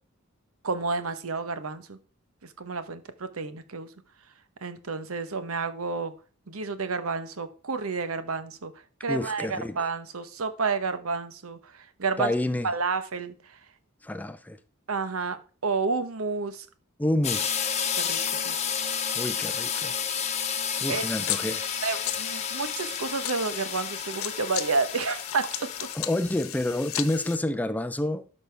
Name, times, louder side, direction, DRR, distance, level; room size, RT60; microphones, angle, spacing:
voice 1, 0.6-2.0 2.6-3.9 4.6-6.1 6.5-8.7 9.0-11.7 12.0-12.3 12.6-13.3 14.9-16.7 18.0-18.6 20.9-21.0 21.8-25.5, right 4 dB, 70° right, 1.0 m, -30 dB
voice 2, 9.1-9.9 12.2-12.7 14.0-14.6 17.0-17.6 19.1-19.9 20.8-21.6 25.9-28.3, left 1 dB, 5° left, 0.4 m, -28 dB
sound 1, 17.2-26.0, left 7 dB, 30° left, 1.0 m, -31 dB
sound 2, 20.7-27.4, left 13 dB, 70° left, 0.7 m, -36 dB
12.0 x 5.4 x 3.3 m
head